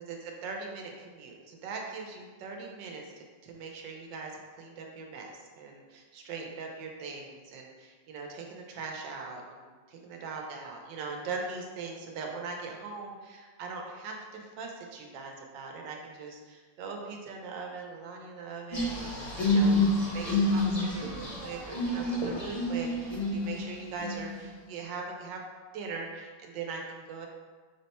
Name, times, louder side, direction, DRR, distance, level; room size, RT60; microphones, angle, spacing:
voice 1, 0.1-9.7 10.0-19.8 20.1-25.4 25.7-27.3, right 4 dB, 85° right, 1 dB, 1.3 m, -41 dB
sound 1, 18.7-23.6 24.0-24.4, left 1 dB, 40° left, 0.5 m, -28 dB
5.7 x 2.2 x 4.1 m, 1.4 s
omnidirectional pair, 2.0 m